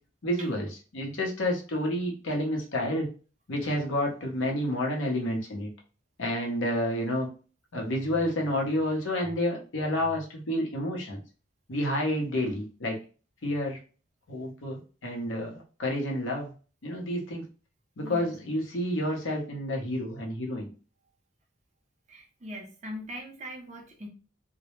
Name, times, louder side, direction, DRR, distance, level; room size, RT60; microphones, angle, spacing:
voice 1, 0.2-0.7 0.9-3.1 3.5-5.7 6.2-7.3 7.7-11.2 11.7-13.0 13.4-13.8 14.3-16.5 16.8-17.4 18.0-20.7, left 1 dB, 80° left, 0 dB, 0.7 m, -29 dB
voice 2, 18.0-18.3 22.1-24.1, equal, 35° right, 1 dB, 0.6 m, -41 dB
2.1 x 2.0 x 3.0 m, 0.36 s
head